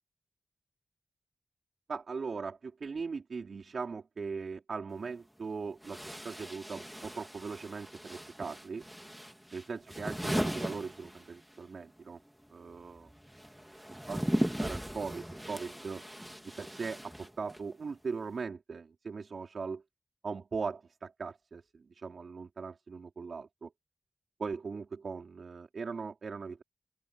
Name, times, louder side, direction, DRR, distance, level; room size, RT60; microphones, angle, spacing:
voice 1, 1.9-8.8 9.5-12.2 12.5-13.1 13.9-16.0 16.6-19.8 20.2-23.7 24.4-26.6, right 5 dB, 80° right, 4.6 m, -40 dB
sound 1, 4.9-5.0 5.8-11.6 11.9-17.7, equal, 5° right, 2.0 m, -38 dB
open air
wide cardioid pair, 115°, 0 cm